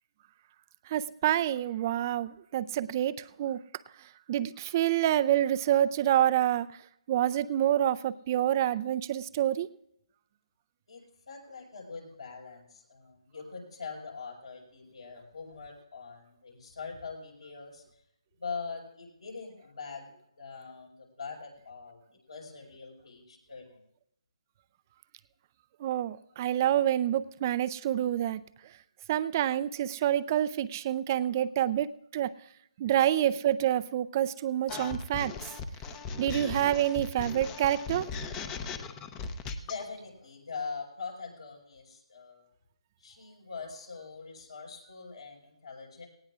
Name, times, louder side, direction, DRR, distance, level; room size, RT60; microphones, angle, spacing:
voice 1, 0.9-3.6 4.3-6.7 7.1-9.7 25.8-28.4 29.1-31.9 32.1-32.3 32.8-35.3 36.2-38.1, right 11 dB, 30° right, 15 dB, 0.4 m, -27 dB
voice 2, 10.9-17.8 18.4-22.0 22.3-23.8 32.8-32.9 39.6-42.4 43.0-46.1, left 5 dB, 75° left, -1 dB, 5.0 m, -43 dB
sound 1, 34.7-39.8, left 5 dB, 15° left, 0.7 m, -38 dB
18.5 x 17.5 x 2.4 m, 0.77 s
figure-of-eight pair, 155°, 3 cm